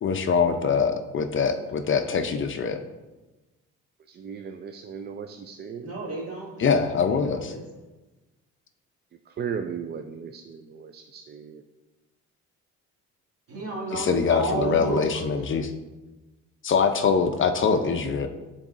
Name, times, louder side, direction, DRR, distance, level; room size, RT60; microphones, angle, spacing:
voice 1, 0.0-2.8 6.6-7.5 13.9-15.7 16.6-18.3, left 5 dB, 40° left, 7 dB, 0.5 m, -23 dB
voice 2, 4.1-5.9 9.3-11.6, right 7 dB, 35° right, 6 dB, 0.4 m, -36 dB
voice 3, 5.8-7.6 13.5-15.1, right 2 dB, 50° right, -3 dB, 1.9 m, -32 dB
9.8 x 3.9 x 2.5 m, 1.1 s
cardioid pair, 90°, 30 cm